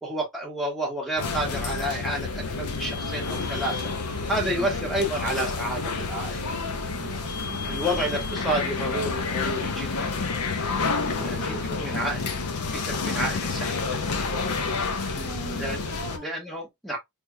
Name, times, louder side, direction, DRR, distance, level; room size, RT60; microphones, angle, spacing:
voice 1, 0.0-3.9 4.3-6.5 7.7-10.5 11.2-12.2 12.7-14.0 15.6-15.9 16.2-17.0, right 1 dB, ahead, 1.1 m, -30 dB
sound 1, 1.2-16.2, left 4 dB, 85° left, 0.7 m, -29 dB
voice 2, 4.6-4.9 6.9-8.3 11.0-12.1 15.1-16.3, right 1 dB, 15° right, 0.7 m, -41 dB
3.4 x 2.8 x 2.2 m
head